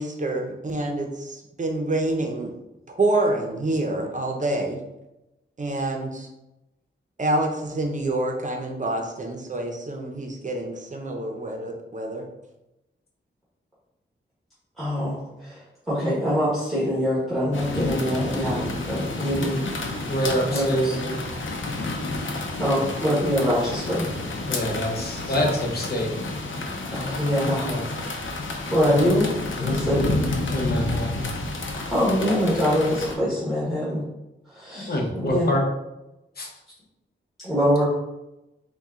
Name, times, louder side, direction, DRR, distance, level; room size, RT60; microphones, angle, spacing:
voice 1, 0.0-2.5 2.9-4.8 5.6-6.3 7.2-12.3, right 2 dB, 40° right, 2 dB, 0.7 m, -27 dB
voice 2, 14.8-15.6 15.9-19.6 20.5-20.9 22.6-24.0 26.9-27.7 28.7-29.3 29.6-30.1 31.9-34.0 34.5-35.5 37.4-37.9, equal, ahead, -9 dB, 1.3 m, -24 dB
sound 1, 17.5-33.1, left 2 dB, 75° left, 0.7 m, -30 dB
voice 3, 20.1-21.2 24.5-26.1 27.4-27.8 29.9-31.3 34.7-35.7 36.4-36.5, equal, 50° left, 0 dB, 0.9 m, -26 dB
4.2 x 2.3 x 3.6 m, 0.95 s
wide cardioid pair, 85°, 20 cm